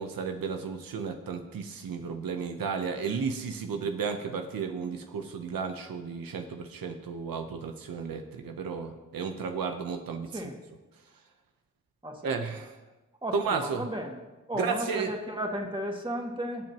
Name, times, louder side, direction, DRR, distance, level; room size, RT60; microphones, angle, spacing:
voice 1, 0.0-10.3 12.2-12.7 13.3-13.9 14.6-15.1, right 5 dB, 85° right, 5 dB, 0.9 m, -33 dB
voice 2, 12.0-12.4 13.2-14.2 14.5-16.7, equal, 15° right, 1 dB, 2.2 m, -34 dB
21.0 x 7.6 x 3.0 m, 1.1 s
cardioid pair, 50°, 34 cm